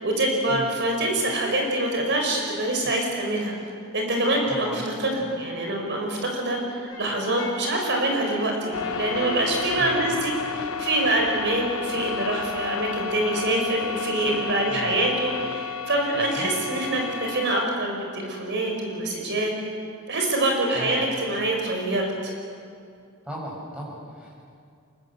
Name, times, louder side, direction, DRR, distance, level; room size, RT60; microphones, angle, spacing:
voice 1, 0.0-3.5 3.9-19.5 20.1-22.3, right 1 dB, 55° right, 1 dB, 5.2 m, -25 dB
voice 2, 4.5-4.8 9.8-10.1 14.7-15.1 16.1-16.8 20.7-21.0 23.2-24.4, equal, 5° right, -4 dB, 6.7 m, -37 dB
Brass instrument, 6.9-10.2, left 1 dB, 20° left, 6.1 m, -38 dB
sound 1, 8.7-17.7, left 7 dB, 75° left, 0.8 m, -32 dB
24.5 x 21.5 x 7.8 m, 2.3 s
head